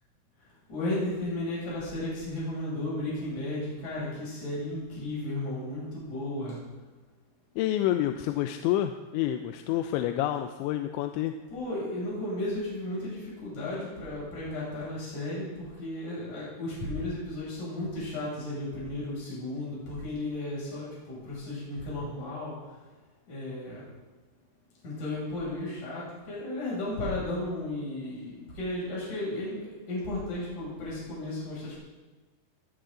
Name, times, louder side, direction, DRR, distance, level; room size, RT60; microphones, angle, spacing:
voice 1, 0.7-6.6 9.7-9.8 11.5-22.7 23.3-23.9 24.8-31.7, left 1 dB, 40° left, -7 dB, 8.1 m, -34 dB
voice 2, 7.6-11.3, left 12 dB, 85° left, 6 dB, 3.0 m, -28 dB
21.5 x 15.0 x 3.9 m, 1.3 s
omnidirectional pair, 5.2 m